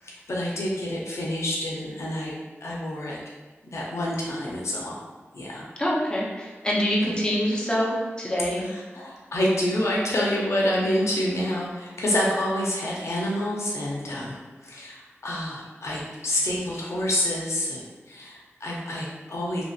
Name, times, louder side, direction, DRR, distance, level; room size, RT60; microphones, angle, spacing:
voice 1, 0.0-3.2 3.7-5.0 5.3-5.7 7.0-7.1 8.6-19.6, left 1 dB, 80° left, -4 dB, 0.5 m, -28 dB
voice 2, 5.8-8.7 14.1-14.2, equal, 20° left, -5 dB, 0.7 m, -25 dB
2.8 x 2.7 x 2.4 m, 1.3 s
wide cardioid pair, 85°, 5 cm